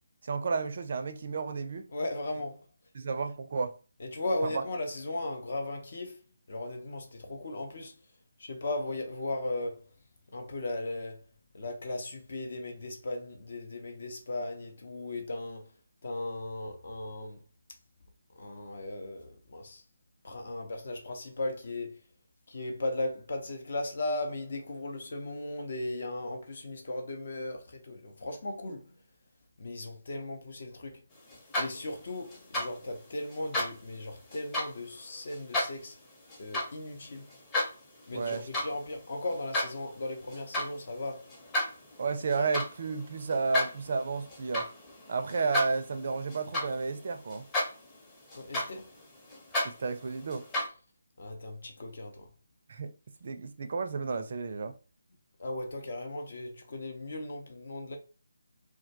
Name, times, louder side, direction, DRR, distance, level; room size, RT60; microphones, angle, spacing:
voice 1, 0.2-1.9 2.9-3.8 4.4-4.6 38.1-38.8 42.0-44.7 45.1-47.5 49.6-50.5 52.7-52.9 53.2-54.7, right 4 dB, 55° right, 0.4 m, -32 dB
voice 2, 1.9-2.6 4.0-7.9 8.4-9.8 10.3-11.2 11.5-15.7 16.0-17.4 18.3-19.8 20.2-22.0 22.5-28.9 29.6-31.0 31.6-36.0 36.4-37.2 38.1-41.3 48.3-48.9 51.2-52.3 55.4-58.0, left 2 dB, 60° left, 0.6 m, -37 dB
sound 1, 31.3-32.0 32.3-32.7 33.3-33.7 34.3-34.7 35.3-35.7 36.3-36.7 37.1-37.7 38.2-38.7 39.0-39.7 40.3-40.7 41.3-47.0 47.3-47.9 48.3-50.7, left 1 dB, 15° left, 0.7 m, -33 dB
2.2 x 2.2 x 2.7 m
figure-of-eight pair, 155°, 0 cm